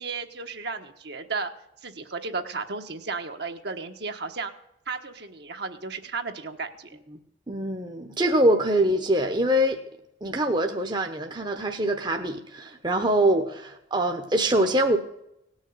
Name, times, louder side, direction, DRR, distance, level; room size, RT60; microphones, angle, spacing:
voice 1, 0.0-1.5 1.8-4.5 4.9-7.0, right 4 dB, 55° right, 1.3 m, -34 dB
voice 2, 7.5-9.8 10.2-15.0, right 1 dB, 25° right, 1.0 m, -24 dB
18.0 x 6.4 x 9.4 m
head